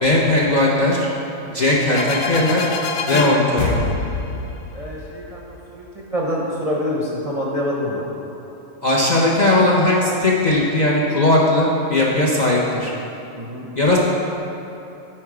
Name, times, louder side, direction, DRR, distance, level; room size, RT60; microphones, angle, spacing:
voice 1, 0.0-1.1 1.5-2.6 3.1-3.7 8.8-12.9 13.8-14.0, left 1 dB, 45° left, -4 dB, 0.6 m, -18 dB
sound 1, 1.9-5.6, left 4 dB, 85° left, 1.0 m, -25 dB
voice 2, 4.7-5.9 6.1-8.1 13.4-13.7, equal, 35° right, -4 dB, 0.6 m, -26 dB
8.7 x 4.5 x 4.8 m, 2.9 s
omnidirectional pair, 1.4 m